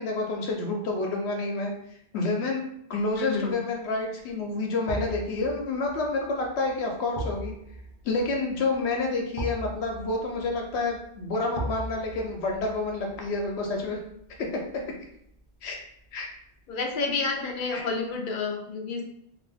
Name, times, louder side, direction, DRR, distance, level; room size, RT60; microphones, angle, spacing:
voice 1, 0.0-1.7 2.1-7.5 8.0-14.0 15.6-15.8 16.1-16.3 17.7-17.8, left 3 dB, 80° left, 0 dB, 0.9 m, -29 dB
sound 1, 3.1-3.5 4.9-15.9 16.2-16.3, right 1 dB, 40° right, 0.7 m, -40 dB
voice 2, 3.2-3.6 16.7-19.0, left 4 dB, 60° left, 2 dB, 0.6 m, -29 dB
2.5 x 2.5 x 3.4 m, 0.73 s
omnidirectional pair, 1.1 m